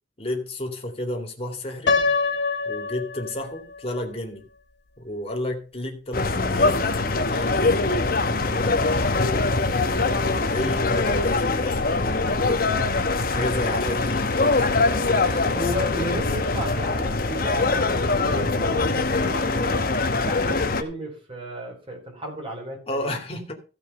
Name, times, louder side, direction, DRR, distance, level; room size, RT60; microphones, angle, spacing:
voice 1, 0.2-2.0 2.7-4.5 5.0-7.7 8.3-9.5 10.1-12.8 13.3-14.7 15.3-15.5 22.9-23.5, left 1 dB, 35° left, 2.5 m, -32 dB
Piano, 1.9-3.8, left 4 dB, 80° left, 1.7 m, -24 dB
sound 1, 6.1-20.8, left 3 dB, 55° left, 1.0 m, -23 dB
voice 2, 15.5-19.9 20.3-23.1, equal, 30° right, 4.2 m, -33 dB
15.0 x 5.4 x 5.4 m
head